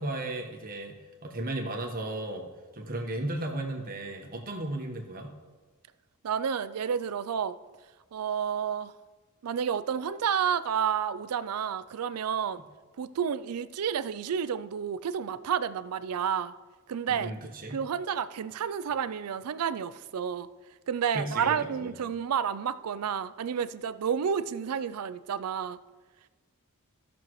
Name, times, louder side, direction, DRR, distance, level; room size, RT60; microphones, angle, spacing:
voice 1, 0.0-2.5 2.7-5.3 17.1-17.8 21.1-21.5 21.8-21.9, right 1 dB, 40° right, 2 dB, 1.3 m, -35 dB
voice 2, 6.2-7.6 8.1-8.9 9.4-12.6 13.0-16.5 16.9-17.3 17.7-20.5 20.9-25.8, right 7 dB, 90° right, 15 dB, 0.4 m, -30 dB
16.0 x 6.3 x 3.1 m, 1.3 s
head